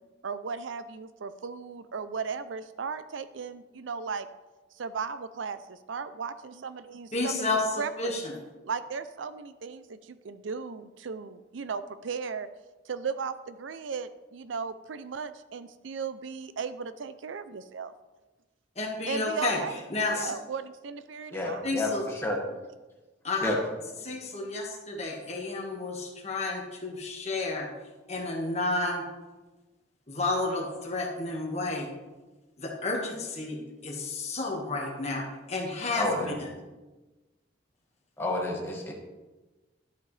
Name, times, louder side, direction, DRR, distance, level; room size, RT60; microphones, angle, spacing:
voice 1, 0.2-4.3 4.8-8.2 8.6-12.5 12.9-17.9 19.1-19.8 20.1-21.7, right 5 dB, 80° right, 13 dB, 0.5 m, -36 dB
voice 2, 7.1-8.3 18.8-19.6 19.9-20.3 21.6-22.0 23.2-23.5 24.0-27.7 28.1-29.0 30.1-31.9 32.6-33.6 33.8-35.2 35.5-36.1 36.4-36.5, left 2 dB, 35° left, 0 dB, 1.7 m, -31 dB
voice 3, 21.3-22.4 23.4-23.6 35.9-36.4 38.2-38.9, left 2 dB, 15° left, -2 dB, 1.8 m, -30 dB
12.0 x 8.2 x 3.3 m, 1.2 s
head